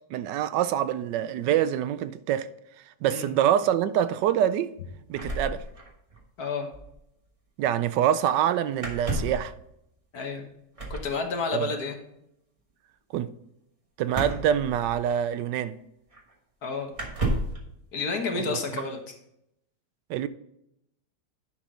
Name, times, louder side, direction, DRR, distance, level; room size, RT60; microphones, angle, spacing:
voice 1, 0.1-2.5 3.0-4.7 5.1-5.6 7.6-9.5 11.5-11.7 13.1-13.3 14.0-15.8 18.3-18.8 20.1-20.3, right 10 dB, 80° right, 1.2 m, -25 dB
sound 1, 5.1-6.2 6.5-6.6 6.7-6.9 8.8-9.5 10.8-11.1 14.1-15.3 16.1-16.2 16.9-17.6, right 1 dB, 20° right, 1.2 m, -31 dB
voice 2, 6.4-6.7 10.1-10.4 10.9-12.0 16.6-16.9 17.9-19.0, left 4 dB, 60° left, 1.7 m, -30 dB
10.0 x 5.9 x 3.7 m
omnidirectional pair, 1.9 m